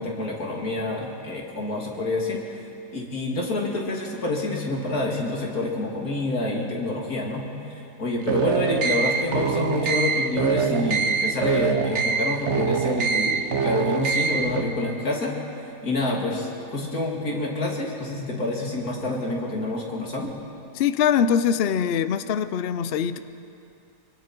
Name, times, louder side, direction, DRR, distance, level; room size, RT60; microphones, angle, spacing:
voice 1, 0.0-2.4 2.9-7.4 8.0-15.3 15.8-20.4, left 2 dB, 55° left, -1 dB, 3.1 m, -27 dB
sound 1, 8.2-14.6, right 6 dB, 50° right, 1.1 m, -24 dB
voice 2, 20.7-23.2, left 8 dB, 85° left, 12 dB, 0.5 m, -22 dB
24.0 x 24.0 x 4.5 m, 2.7 s
omnidirectional pair, 1.8 m